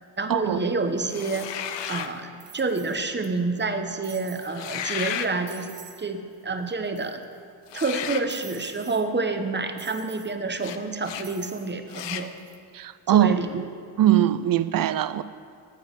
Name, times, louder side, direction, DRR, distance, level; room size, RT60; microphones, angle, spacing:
voice 1, 0.2-1.5 1.9-5.7 6.0-7.2 7.7-12.3 13.1-13.6, right 3 dB, 25° right, 7 dB, 0.9 m, -28 dB
sound 1, 1.1-2.2 4.4-5.3 7.7-8.3 10.6-10.8 11.0-11.3 11.9-12.3, left 9 dB, 85° left, 0.6 m, -33 dB
sound 2, 1.6-1.7 2.4-3.3 3.6-3.7 4.0-4.5 5.0-5.1 5.5-6.0 6.3-6.4 6.7-7.4 8.3-9.0 9.8-10.3 11.2-11.7 12.2-12.6, right 8 dB, 85° right, 1.0 m, -47 dB
voice 2, 12.7-13.3 14.0-15.2, right 12 dB, 55° right, 15 dB, 0.5 m, -21 dB
14.0 x 6.9 x 5.2 m, 2.3 s
cardioid pair, 90°, 42 cm